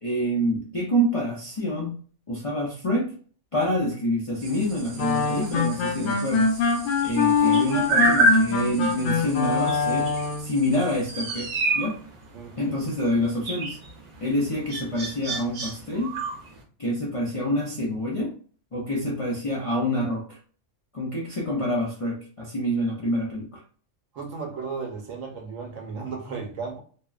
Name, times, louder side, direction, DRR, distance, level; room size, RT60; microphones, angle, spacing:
voice 1, 0.0-2.0 2.3-3.1 3.5-6.6 7.0-10.1 10.4-11.5 11.7-12.0 12.6-13.8 14.2-16.2 16.8-18.3 18.7-20.4 20.9-23.6, equal, 45° left, -5 dB, 0.4 m, -27 dB
sound 1, 4.4-16.6, right 2 dB, 65° right, 1.0 m, -29 dB
sound 2, 5.0-10.5, left 5 dB, 80° left, 1.0 m, -24 dB
voice 2, 12.3-12.8 24.1-26.8, right 5 dB, 90° right, 3 dB, 1.1 m, -35 dB
2.8 x 2.0 x 2.3 m, 0.43 s
omnidirectional pair, 1.3 m